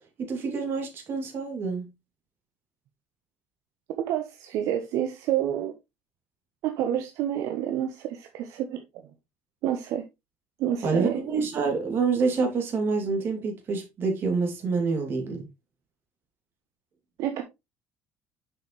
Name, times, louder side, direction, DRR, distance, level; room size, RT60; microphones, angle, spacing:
voice 1, 0.2-1.9 10.8-15.5, right 4 dB, 40° right, 2.6 m, -27 dB
voice 2, 4.0-5.8 6.6-9.1 9.6-10.0 10.6-11.2 17.2-17.4, right 11 dB, 65° right, 0.9 m, -29 dB
6.8 x 5.7 x 3.1 m
cardioid pair, 140°, 6 cm